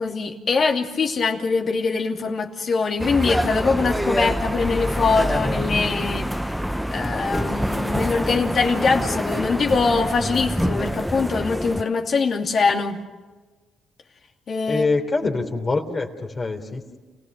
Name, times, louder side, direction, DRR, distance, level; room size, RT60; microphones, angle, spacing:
voice 1, 0.0-6.3 6.9-13.0 14.5-14.9, left 4 dB, 50° left, 3 dB, 2.7 m, -23 dB
sound 1, 3.0-11.8, equal, ahead, 0.6 m, -26 dB
voice 2, 14.7-17.0, left 3 dB, 35° left, 3 dB, 3.2 m, -24 dB
29.5 x 17.5 x 6.7 m, 1.3 s
cardioid pair, 90°, 0 cm